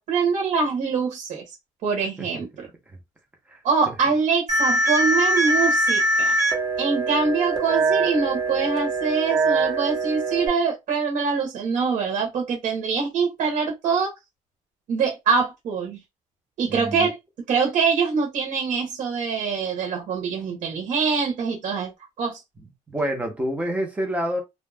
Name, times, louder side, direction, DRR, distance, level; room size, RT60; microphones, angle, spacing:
voice 1, 0.0-1.4 1.8-2.7 3.6-6.3 6.8-14.1 14.9-16.0 16.6-17.2 17.5-21.9 22.2-22.4, right 5 dB, 65° right, 1.0 m, -24 dB
voice 2, 3.5-3.9 16.7-17.1 22.9-24.4, equal, 10° right, 0.7 m, -28 dB
sound 1, 4.5-10.5, right 2 dB, 30° right, 1.0 m, -22 dB
2.4 x 2.0 x 3.3 m
cardioid pair, 160°, 13 cm